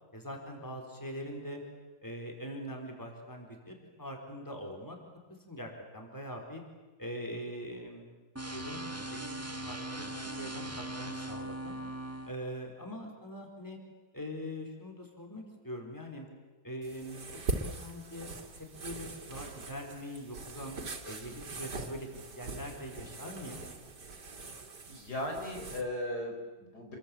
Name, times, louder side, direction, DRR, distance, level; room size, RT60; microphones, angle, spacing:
voice 1, 0.1-1.6 2.0-5.0 5.5-6.6 7.0-8.0 8.5-11.8 12.2-13.8 14.1-16.3 16.6-18.3 18.8-20.8 21.1-22.1 22.4-23.7, equal, 10° left, 2 dB, 4.4 m, -42 dB
sound 1, 8.3-12.3, right 1 dB, 10° right, 1.3 m, -40 dB
voice 2, 10.2-10.6 24.9-27.0, left 1 dB, 70° left, 2 dB, 5.3 m, -38 dB
sound 2, 16.8-25.8, right 3 dB, 80° right, 3.0 m, -42 dB
28.5 x 22.0 x 8.7 m, 1.2 s
omnidirectional pair, 1.8 m